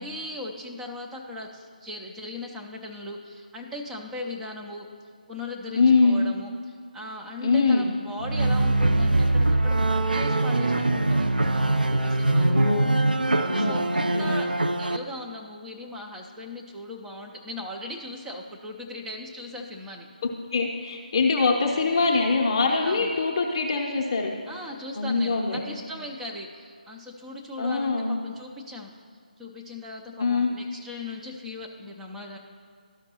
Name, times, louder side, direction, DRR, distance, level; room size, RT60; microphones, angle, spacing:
voice 1, 0.0-4.9 5.3-11.5 12.0-12.6 13.3-14.5 14.8-20.1 22.8-23.1 24.5-28.9 29.4-32.4, left 1 dB, 5° right, -1 dB, 0.5 m, -38 dB
voice 2, 5.7-6.2 7.4-7.9 12.3-12.8 13.5-13.8 14.1-14.3 20.5-24.3 25.0-25.6 27.6-28.2 30.2-30.5, left 4 dB, 35° left, 0 dB, 0.7 m, -23 dB
sound 1, 8.2-15.0, right 2 dB, 80° right, 0.4 m, -23 dB
13.0 x 5.1 x 2.9 m, 2.1 s
figure-of-eight pair, 155°, 5 cm